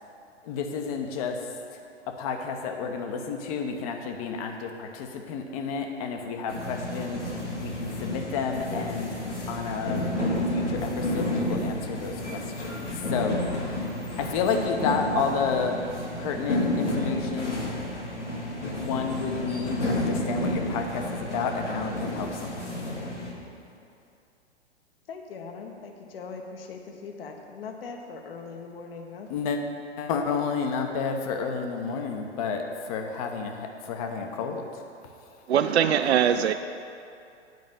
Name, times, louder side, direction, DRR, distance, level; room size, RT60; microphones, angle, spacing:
voice 1, 0.4-1.4 2.1-7.2 7.6-9.2 9.5-10.0 10.5-13.9 14.2-15.8 16.2-17.6 18.6-22.8 29.3-29.6 30.0-34.8, left 5 dB, 30° left, 0.9 m, -31 dB
sound 1, 6.5-23.3, left 1 dB, 85° left, 2.0 m, -31 dB
voice 2, 25.1-29.3, left 4 dB, 55° left, 1.1 m, -40 dB
voice 3, 35.5-36.5, right 8 dB, 65° right, 0.5 m, -21 dB
9.3 x 5.1 x 7.1 m
figure-of-eight pair, 110°, 35 cm